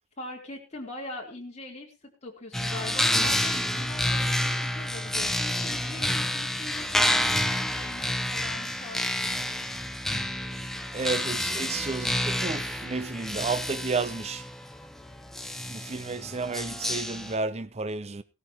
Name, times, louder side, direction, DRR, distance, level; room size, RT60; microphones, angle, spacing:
voice 1, 0.2-9.1, left 2 dB, 30° left, 3.5 m, -41 dB
sound 1, 2.5-17.3, left 1 dB, ahead, 0.9 m, -29 dB
voice 2, 10.9-14.5 15.7-18.2, right 4 dB, 30° right, 0.6 m, -32 dB
17.5 x 13.0 x 3.0 m
head